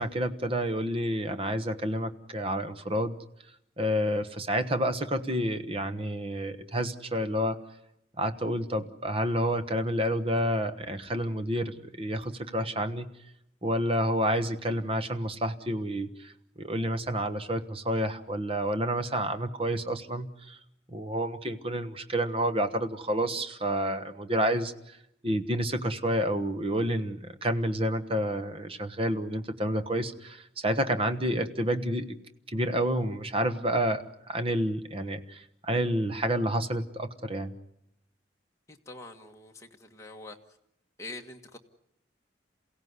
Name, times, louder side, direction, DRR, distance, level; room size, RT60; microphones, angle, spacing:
voice 1, 0.0-3.1 3.8-7.6 8.2-13.1 13.6-16.3 16.6-20.6 20.9-25.0 25.2-32.2 32.5-37.5, equal, 30° right, 10 dB, 1.2 m, -29 dB
voice 2, 38.7-40.4 41.0-41.6, left 2 dB, 15° left, 1 dB, 1.6 m, -44 dB
28.0 x 16.5 x 9.6 m, 0.80 s
head